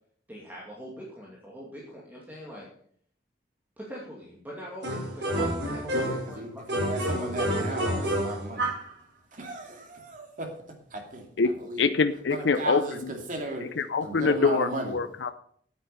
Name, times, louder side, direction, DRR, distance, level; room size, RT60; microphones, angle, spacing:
voice 1, 0.3-2.7 3.8-6.6 7.2-7.3, equal, 10° right, -4 dB, 2.5 m, -43 dB
sound 1, 4.8-6.3 6.7-8.9, right 1 dB, 70° right, 4.5 m, -29 dB
voice 2, 6.0-8.7 9.3-11.3 11.6-11.9 12.3-13.8 14.0-15.0, right 2 dB, 45° right, 3 dB, 2.5 m, -36 dB
voice 3, 11.4-13.1 13.8-15.3, left 4 dB, 85° left, 10 dB, 0.6 m, -25 dB
9.4 x 9.0 x 6.7 m, 0.62 s
head